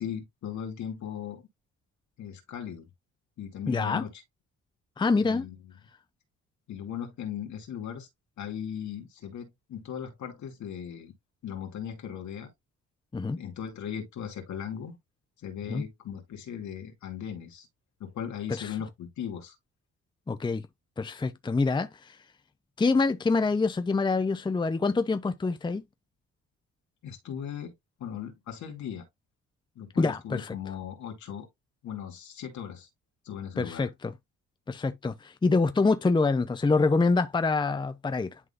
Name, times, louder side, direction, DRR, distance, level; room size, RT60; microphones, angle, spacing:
voice 1, 0.0-1.4 2.2-2.9 3.4-4.1 5.2-5.6 6.7-8.1 8.4-11.1 11.4-12.5 13.3-15.0 15.4-17.7 18.0-19.6 27.0-27.7 28.0-29.0 29.8-31.5 31.8-32.9 33.2-33.9, left 9 dB, 70° left, 2.5 m, -38 dB
voice 2, 3.7-4.0 5.0-5.5 13.1-13.4 15.7-15.8 18.5-18.8 20.3-20.6 21.0-22.2 22.8-25.8 30.0-30.5 33.6-34.1 34.7-38.4, left 3 dB, 15° left, 0.6 m, -26 dB
11.0 x 3.9 x 2.5 m
cardioid pair, 90°, 30 cm